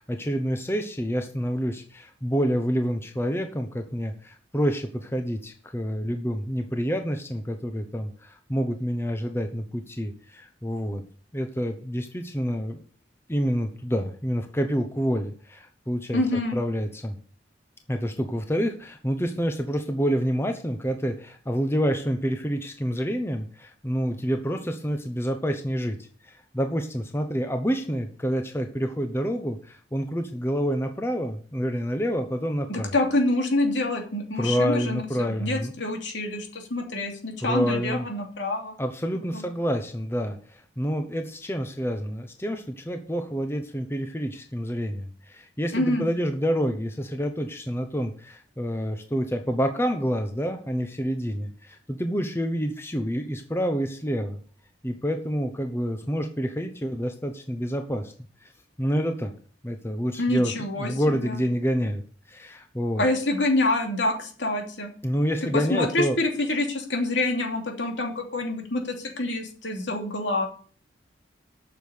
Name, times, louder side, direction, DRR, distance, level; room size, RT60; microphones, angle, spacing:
voice 1, 0.0-11.0 11.3-12.8 13.3-16.2 16.5-17.1 17.9-26.0 26.2-32.9 34.4-35.7 37.4-38.1 38.8-54.4 54.8-58.1 58.8-59.3 59.6-60.5 60.8-62.0 62.3-63.0 65.0-66.2, equal, 15° left, 6 dB, 0.9 m, -28 dB
voice 2, 16.1-16.6 32.7-38.8 39.3-39.4 45.7-46.0 60.2-61.4 63.0-64.9 65.5-70.5, left 2 dB, 75° left, 3 dB, 2.8 m, -26 dB
8.9 x 6.7 x 8.1 m, 0.43 s
head